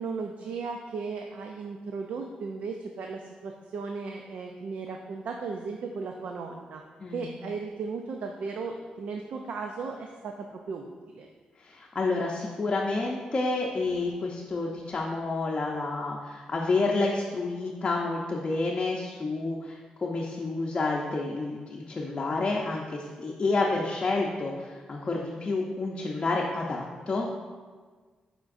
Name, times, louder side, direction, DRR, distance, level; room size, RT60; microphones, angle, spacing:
voice 1, 0.0-6.8 7.1-11.3, right 4 dB, 70° right, 3 dB, 0.4 m, -36 dB
voice 2, 11.6-27.3, left 3 dB, 35° left, -2 dB, 0.6 m, -29 dB
7.3 x 5.1 x 2.6 m, 1.5 s
cardioid pair, 115°, 3 cm